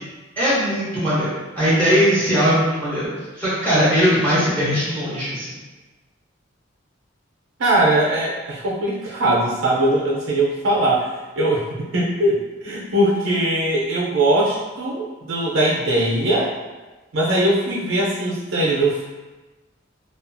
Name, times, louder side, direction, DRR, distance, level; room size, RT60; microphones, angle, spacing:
voice 1, 0.4-3.1 3.4-5.5, equal, 10° left, -11 dB, 0.7 m, -19 dB
voice 2, 7.6-16.5 17.1-19.0, right 1 dB, 80° right, -4 dB, 0.5 m, -20 dB
2.7 x 2.3 x 2.5 m, 1.2 s
head